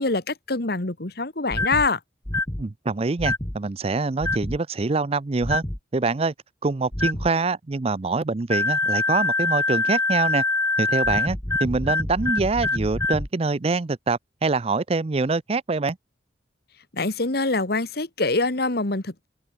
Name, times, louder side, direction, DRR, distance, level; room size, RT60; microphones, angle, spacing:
voice 1, 0.0-2.0 16.9-19.3, left 3 dB, 60° left, 1.8 m, -25 dB
sound 1, 1.5-1.9 2.3-2.6 3.2-3.6 4.2-4.6 5.4-5.8 6.9-7.3 8.5-13.3, left 2 dB, 15° left, 1.1 m, -25 dB
voice 2, 2.6-5.6 5.9-6.3 6.6-10.4 10.8-16.0, right 3 dB, 35° right, 0.5 m, -25 dB
open air
head